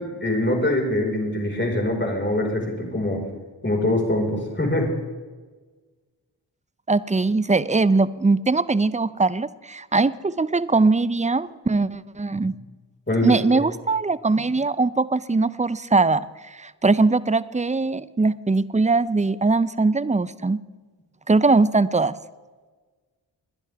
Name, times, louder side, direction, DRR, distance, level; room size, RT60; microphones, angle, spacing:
voice 1, 0.0-3.3 3.6-4.9 13.1-13.6, left 1 dB, 25° left, 0 dB, 5.1 m, -24 dB
voice 2, 6.9-12.5 13.2-16.2 16.5-20.6 21.3-22.1, right 3 dB, 15° right, 17 dB, 0.7 m, -21 dB
22.5 x 10.5 x 3.6 m, 1.4 s
supercardioid pair, 40°, 46 cm